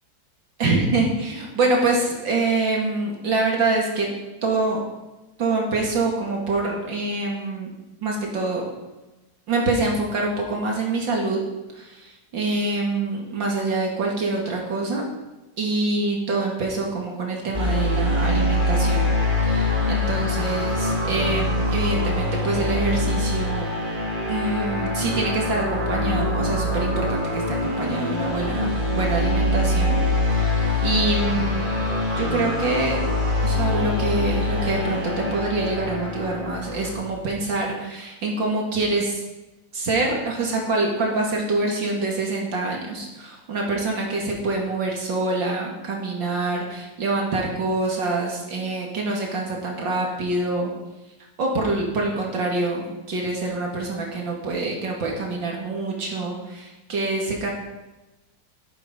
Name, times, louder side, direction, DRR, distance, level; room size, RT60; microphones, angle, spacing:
voice 1, 0.6-4.1 4.4-4.8 5.4-7.7 8.0-8.6 9.5-11.4 11.7-15.1 15.6-19.0 19.4-23.7 24.3-30.0 30.4-30.5 30.8-31.7 32.2-33.0 33.4-39.2 39.7-50.7 51.4-57.5, right 3 dB, 70° right, -1 dB, 2.9 m, -25 dB
sound 1, 17.5-37.0, left 2 dB, 25° right, 2.6 m, -24 dB
12.0 x 12.0 x 5.2 m, 1.0 s
omnidirectional pair, 2.1 m